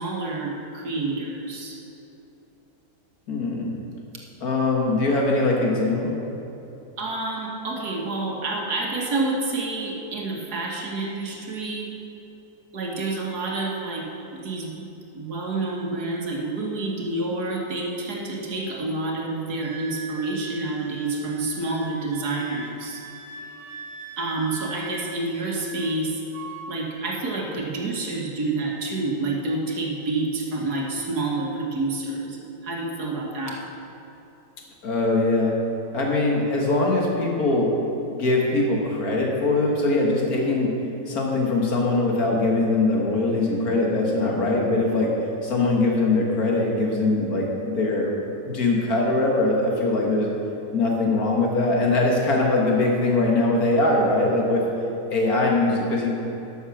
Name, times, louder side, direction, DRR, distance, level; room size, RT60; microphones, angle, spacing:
voice 1, 0.0-1.8 7.0-11.9 12.7-14.1 14.3-14.7 15.1-23.0 24.2-26.2 26.7-33.6, right 2 dB, 65° right, -1 dB, 2.0 m, -28 dB
voice 2, 3.3-3.7 4.4-6.2 34.8-35.5 35.9-37.7 38.1-40.7 41.1-45.1 45.4-48.2 48.5-50.3 50.7-54.7 55.1-56.1, left 2 dB, 60° left, -1 dB, 2.0 m, -22 dB
Wind instrument woodwind instrument, 19.6-26.0 26.3-26.9, right 4 dB, 90° right, 1.5 m, -41 dB
12.0 x 7.1 x 6.2 m, 3.0 s
omnidirectional pair, 1.8 m